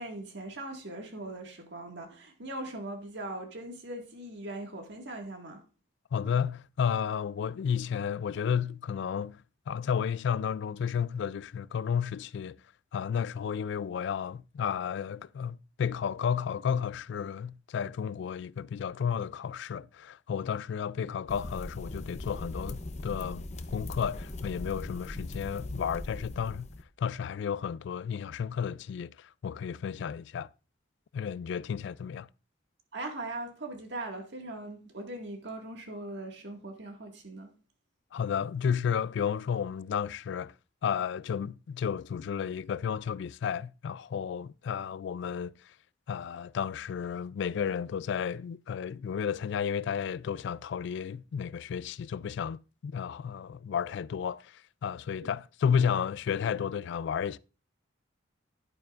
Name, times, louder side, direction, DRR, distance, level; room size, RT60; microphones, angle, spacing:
voice 1, 0.0-5.6 32.9-37.5 55.2-55.3, right 2 dB, 65° right, 1.9 m, -40 dB
voice 2, 6.1-12.6 12.9-23.5 23.7-26.7 27.0-30.5 31.1-32.3 38.1-40.5 40.8-45.7 46.1-57.4, left 7 dB, 65° left, 0.3 m, -32 dB
sound 1, 21.3-26.8, left 1 dB, 35° left, 0.7 m, -40 dB
11.0 x 8.8 x 2.5 m
head